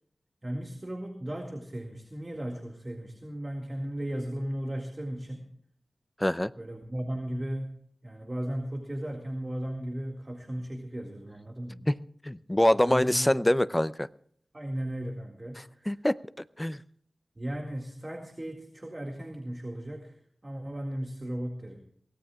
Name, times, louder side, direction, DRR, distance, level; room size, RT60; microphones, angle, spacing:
voice 1, 0.4-5.5 6.6-7.8 8.0-11.8 12.8-13.3 14.5-16.0 17.4-21.8, right 1 dB, 25° right, 2.0 m, -36 dB
voice 2, 6.2-6.5 11.9-12.0 12.2-14.1 15.9-16.2 16.6-16.8, left 1 dB, 10° left, 0.5 m, -24 dB
23.0 x 18.0 x 2.4 m
wide cardioid pair, 95°, 0 cm